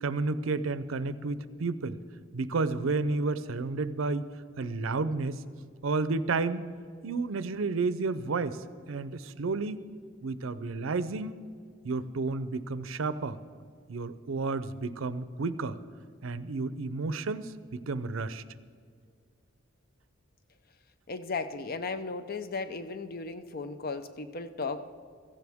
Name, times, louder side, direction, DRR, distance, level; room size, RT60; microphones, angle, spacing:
voice 1, 0.0-2.0 2.3-4.3 4.6-5.4 5.8-6.7 7.0-8.6 8.9-9.8 10.2-11.4 11.8-13.4 13.9-15.8 16.2-18.4, right 3 dB, 85° right, 14 dB, 0.6 m, -31 dB
voice 2, 21.1-24.9, left 4 dB, 50° left, 11 dB, 0.6 m, -35 dB
15.5 x 15.0 x 3.6 m, 2.1 s
head